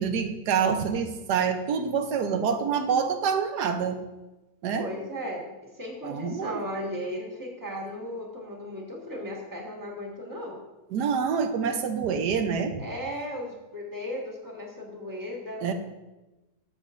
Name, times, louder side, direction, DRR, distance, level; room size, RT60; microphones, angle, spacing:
voice 1, 0.0-4.0 4.6-4.9 6.0-6.6 10.9-12.8 15.6-15.7, right 6 dB, 75° right, 7 dB, 1.4 m, -26 dB
voice 2, 4.8-10.6 12.8-15.7, equal, 10° right, -2 dB, 1.5 m, -36 dB
13.5 x 7.2 x 2.5 m, 1.1 s
omnidirectional pair, 1.8 m